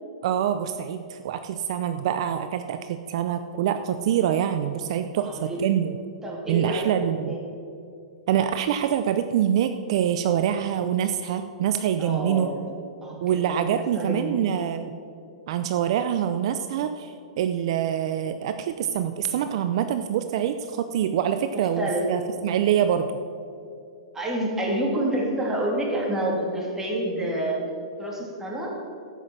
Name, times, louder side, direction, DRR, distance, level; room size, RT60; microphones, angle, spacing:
voice 1, 0.2-6.0 6.5-7.3 8.3-12.5 13.2-15.0 15.5-23.1, right 9 dB, 60° right, 9 dB, 0.6 m, -25 dB
voice 2, 5.2-5.6 6.2-7.4 12.0-12.7 13.0-13.4 13.7-14.5 21.5-22.1 24.1-27.6 28.0-28.7, right 1 dB, 10° right, -3 dB, 3.0 m, -28 dB
13.5 x 6.3 x 7.3 m, 2.5 s
hypercardioid pair, 130°, 3 cm